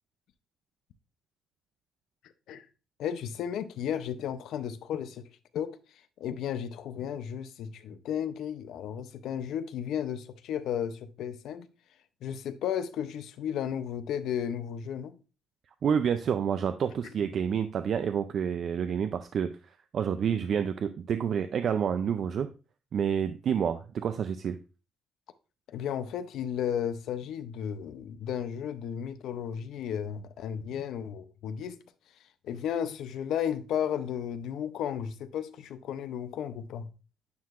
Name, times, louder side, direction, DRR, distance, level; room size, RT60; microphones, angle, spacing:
voice 1, 3.0-5.2 5.5-5.8 6.2-11.7 12.2-15.2 25.7-31.8 32.4-36.9, left 9 dB, 75° left, 0.6 m, -34 dB
voice 2, 15.8-22.5 22.9-24.6, right 7 dB, 55° right, 0.4 m, -29 dB
9.4 x 4.6 x 2.4 m
cardioid pair, 110°, 0 cm